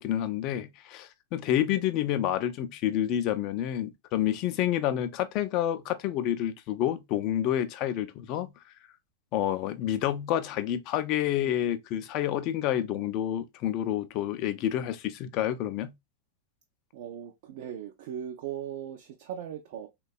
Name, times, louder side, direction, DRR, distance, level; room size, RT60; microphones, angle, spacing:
voice 1, 0.0-8.5 9.3-15.9, left 11 dB, 40° left, 0.4 m, -29 dB
voice 2, 16.9-19.9, right 9 dB, 50° right, 0.4 m, -38 dB
3.3 x 2.2 x 2.3 m
figure-of-eight pair, 90°, 0 cm